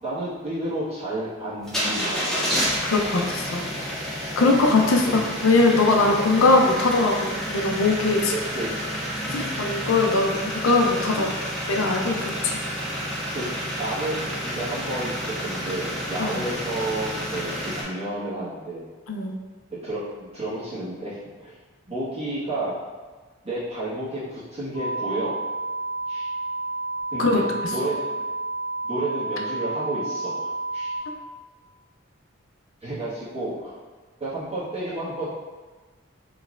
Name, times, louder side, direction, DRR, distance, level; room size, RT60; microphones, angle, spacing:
voice 1, 0.0-2.6 4.4-5.2 8.3-8.8 9.2-9.3 11.1-11.3 13.3-13.5 13.8-18.8 19.8-21.6 21.9-22.7 23.4-25.3 26.1-26.3 27.1-28.2 28.8-30.3 30.7-30.9 32.8-33.8 34.2-35.3, right 1 dB, 30° right, -11 dB, 1.4 m, -31 dB
sound 1, 1.6-17.8, equal, 5° left, 0.8 m, -30 dB
voice 2, 2.8-3.6 4.4-8.3 9.3-11.3 11.7-12.6 16.2-16.4 19.1-19.4 27.2-27.4 31.1-31.2, left 3 dB, 85° left, 2 dB, 0.5 m, -21 dB
sound 2, 24.7-31.0, right 2 dB, 25° left, 0.4 m, -30 dB
4.1 x 3.1 x 2.5 m, 1.3 s
head